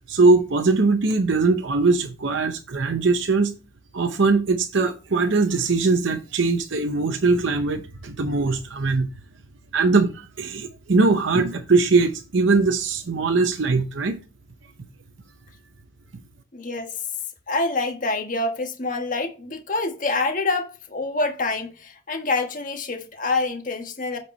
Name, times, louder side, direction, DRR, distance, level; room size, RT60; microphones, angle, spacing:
voice 1, 0.1-3.5 3.9-9.1 9.7-14.2, right 3 dB, 65° right, 0.7 m, -21 dB
voice 2, 16.5-16.9 17.5-24.2, left 3 dB, 40° left, 1.3 m, -26 dB
8.4 x 4.5 x 4.3 m
head